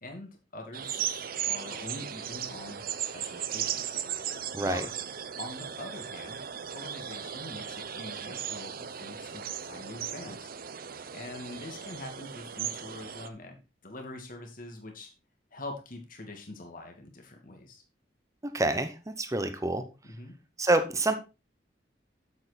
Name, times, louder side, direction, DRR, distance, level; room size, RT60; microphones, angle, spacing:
voice 1, 0.0-2.8 3.1-4.0 4.6-4.9 5.4-10.5 11.1-13.6 13.8-15.1 15.5-17.8 20.0-20.3, left 2 dB, 50° left, 3 dB, 2.4 m, -44 dB
sound 1, 0.7-13.3, right 9 dB, 55° right, 0.7 m, -37 dB
voice 2, 18.4-19.8 20.6-21.1, right 2 dB, 20° right, 8 dB, 1.0 m, -27 dB
8.4 x 7.7 x 4.2 m, 0.29 s
head